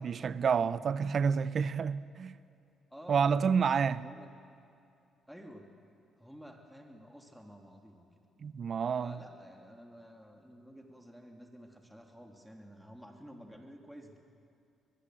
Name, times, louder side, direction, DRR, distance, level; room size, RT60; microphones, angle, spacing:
voice 1, 0.0-2.3 3.1-4.0 8.4-9.1, right 6 dB, 50° right, 0.7 m, -29 dB
voice 2, 2.9-3.6 4.0-4.3 5.3-5.7 6.2-8.1 9.0-14.2, equal, ahead, 2.9 m, -51 dB
22.5 x 21.0 x 7.7 m
cardioid pair, 90°, 0 cm